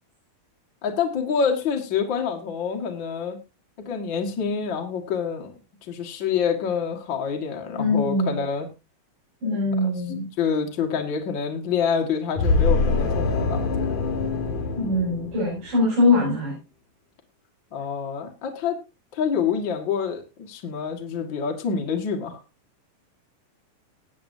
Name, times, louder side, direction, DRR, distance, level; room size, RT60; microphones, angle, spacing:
voice 1, 0.8-3.4 3.9-5.5 5.9-8.7 9.8-9.9 10.4-14.0 17.7-18.8 19.1-22.4, left 6 dB, 40° left, 2 dB, 2.0 m, -27 dB
voice 2, 7.8-8.4 9.4-10.3 14.8-16.5, left 2 dB, 80° right, -7 dB, 8.0 m, -22 dB
sound 1, 12.4-15.8, left 3 dB, 60° left, 2.7 m, -24 dB
20.0 x 8.7 x 2.7 m, 0.27 s
omnidirectional pair, 4.0 m